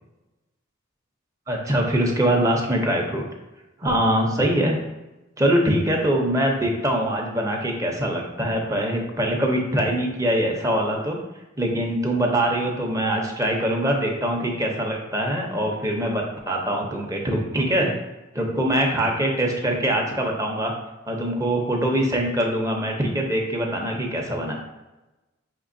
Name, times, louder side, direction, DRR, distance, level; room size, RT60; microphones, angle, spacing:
voice 1, 1.5-3.2 3.8-4.8 5.4-11.2 11.6-17.9 18.3-20.7 21.1-24.5, right 1 dB, 15° right, 1 dB, 0.6 m, -23 dB
5.2 x 3.3 x 2.6 m, 1.0 s
head